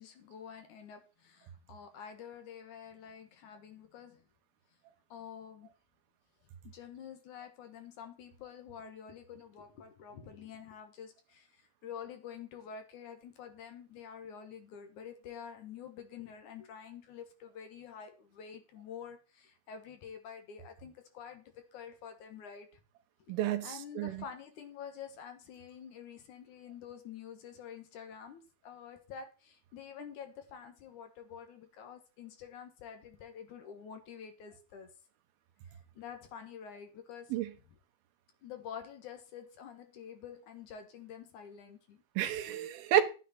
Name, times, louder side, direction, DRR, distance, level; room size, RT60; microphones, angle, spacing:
voice 1, 0.0-4.2 5.1-5.7 6.6-22.8 23.3-23.4 23.6-34.9 36.0-37.4 38.4-42.0 42.5-42.6, left 7 dB, 65° left, 2.5 m, -48 dB
voice 2, 23.3-24.2 37.3-37.5 42.2-43.0, right 11 dB, 90° right, 3.0 m, -30 dB
11.5 x 9.2 x 4.2 m
omnidirectional pair, 4.2 m